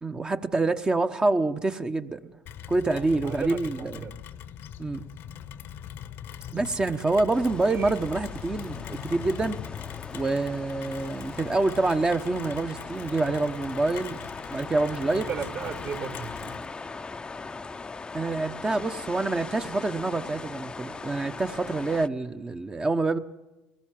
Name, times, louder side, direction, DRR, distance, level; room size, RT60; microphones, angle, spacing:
voice 1, 0.0-2.4 2.7-3.9 4.8-5.1 6.5-9.6 10.1-14.2 14.5-15.3 18.1-23.2, right 2 dB, 20° right, 1.0 m, -26 dB
Rain, 2.5-16.7, left 10 dB, 55° left, 1.0 m, -42 dB
voice 2, 2.9-4.2 7.6-7.9 15.1-16.6, right 6 dB, 60° right, 4.0 m, -36 dB
sound 1, 7.3-22.1, left 4 dB, 20° left, 0.7 m, -40 dB
23.0 x 19.0 x 7.6 m
supercardioid pair, 90°, 5 cm